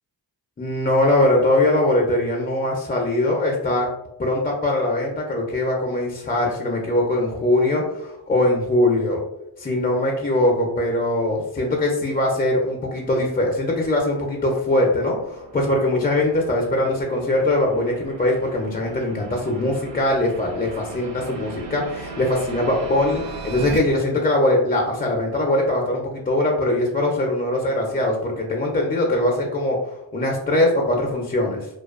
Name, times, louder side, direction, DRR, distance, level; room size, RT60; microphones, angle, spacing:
voice 1, 0.6-3.9 4.2-9.2 9.6-31.7, left 1 dB, 20° left, -1 dB, 0.4 m, -21 dB
sound 1, 12.7-23.8, right 4 dB, 70° right, 0.6 m, -39 dB
2.4 x 2.3 x 2.3 m, 0.88 s
cardioid pair, 75°, 44 cm